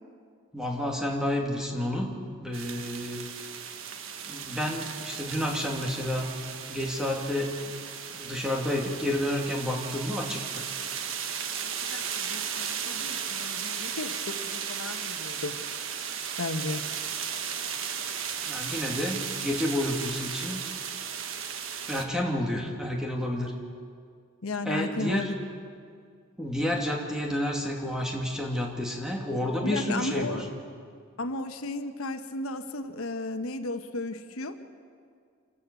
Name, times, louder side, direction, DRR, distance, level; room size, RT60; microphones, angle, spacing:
voice 1, 0.5-2.1 2.4-3.2 4.3-6.3 6.7-7.5 8.1-10.6 18.5-20.6 21.9-23.5 24.6-25.3 26.4-30.4, left 1 dB, 5° right, 0 dB, 2.4 m, -30 dB
sound 1, 2.5-22.0, right 7 dB, 70° right, 1.4 m, -35 dB
voice 2, 11.6-15.6 16.4-16.8 24.4-25.4 29.6-30.4 31.2-34.6, left 2 dB, 85° left, 8 dB, 1.1 m, -34 dB
27.5 x 13.0 x 8.3 m, 2.2 s
head